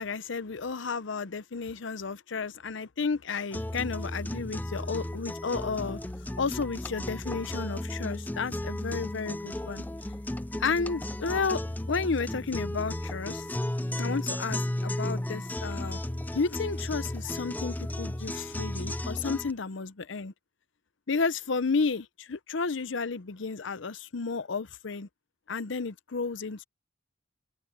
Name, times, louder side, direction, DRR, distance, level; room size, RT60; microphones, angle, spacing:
voice 1, 0.0-6.0 6.4-9.8 10.6-11.6 11.9-13.5 14.0-16.0 16.3-20.3 21.1-25.1 25.5-26.6, left 4 dB, 70° left, 0.7 m, -32 dB
sound 1, 3.5-19.5, left 1 dB, 10° left, 0.5 m, -34 dB
head